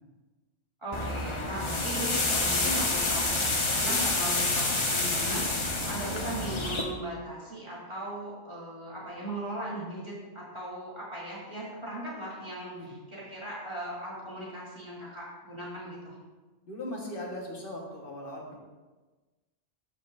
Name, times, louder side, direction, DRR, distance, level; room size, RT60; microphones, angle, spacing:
voice 1, 0.8-16.1, right 1 dB, 25° right, -8 dB, 2.8 m, -38 dB
sound 1, 0.9-6.8, left 2 dB, 30° left, 0.7 m, -28 dB
voice 2, 16.6-18.6, left 1 dB, 50° left, -1 dB, 1.6 m, -39 dB
13.0 x 5.3 x 2.6 m, 1.2 s
omnidirectional pair, 1.2 m